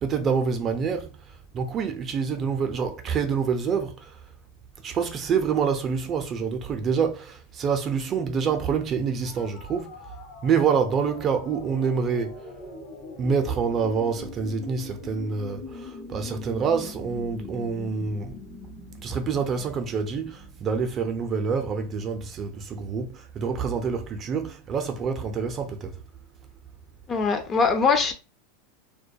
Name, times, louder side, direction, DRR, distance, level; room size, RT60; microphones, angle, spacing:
voice 1, 0.0-4.2 4.8-10.0 10.4-12.4 13.2-18.4 19.0-26.0, right 6 dB, 35° right, 0.5 m, -27 dB
sound 1, 9.1-20.9, left 4 dB, 60° left, 0.8 m, -42 dB
voice 2, 27.1-28.1, left 5 dB, 30° left, 0.4 m, -22 dB
2.2 x 2.2 x 2.6 m
hypercardioid pair, 115°, 0 cm